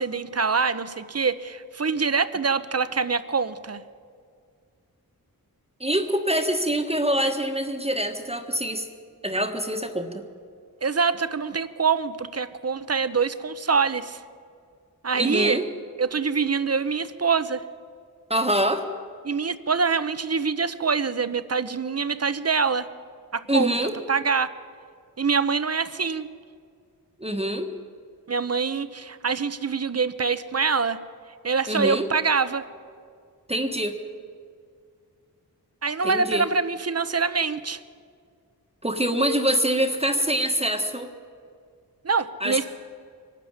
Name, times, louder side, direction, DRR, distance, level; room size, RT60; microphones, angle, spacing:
voice 1, 0.0-3.8 10.8-14.2 15.0-15.6 16.0-17.6 19.2-22.9 23.3-23.8 24.1-24.5 25.2-26.3 28.3-31.0 31.4-32.6 35.8-37.8 42.0-42.7, right 5 dB, 45° right, 13 dB, 0.9 m, -25 dB
voice 2, 5.8-8.9 9.2-10.2 15.1-15.6 18.3-18.9 23.5-24.0 27.2-27.7 31.7-32.1 33.5-33.9 36.0-36.5 38.8-41.1 42.4-42.7, right 1 dB, 15° right, 4 dB, 1.5 m, -25 dB
23.5 x 13.0 x 9.5 m, 2.2 s
wide cardioid pair, 90°, 35 cm